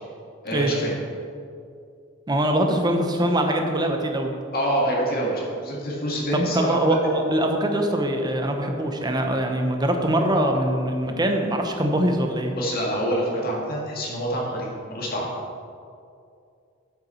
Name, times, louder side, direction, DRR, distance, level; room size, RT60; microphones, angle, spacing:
voice 1, 0.4-0.9 4.5-6.8 12.6-15.3, equal, 45° left, -2 dB, 1.9 m, -26 dB
voice 2, 2.3-4.3 6.3-12.6, right 1 dB, 20° right, 4 dB, 0.7 m, -23 dB
8.3 x 8.0 x 4.3 m, 2.4 s
head